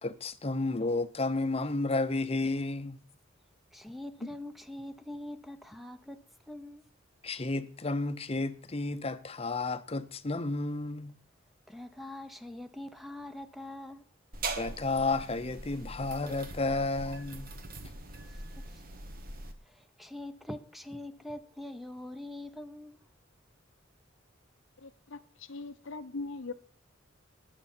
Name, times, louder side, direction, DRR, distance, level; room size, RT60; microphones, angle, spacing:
voice 1, 0.0-3.0 7.2-11.1 14.6-17.5, left 2 dB, 30° left, 0.8 m, -32 dB
voice 2, 3.7-6.8 11.7-14.1 18.5-18.8 19.6-23.0, left 1 dB, ahead, 0.8 m, -43 dB
sound 1, 14.3-19.5, right 3 dB, 50° right, 1.5 m, -41 dB
voice 3, 24.8-26.5, left 3 dB, 75° left, 0.8 m, -41 dB
20.5 x 7.0 x 4.4 m
head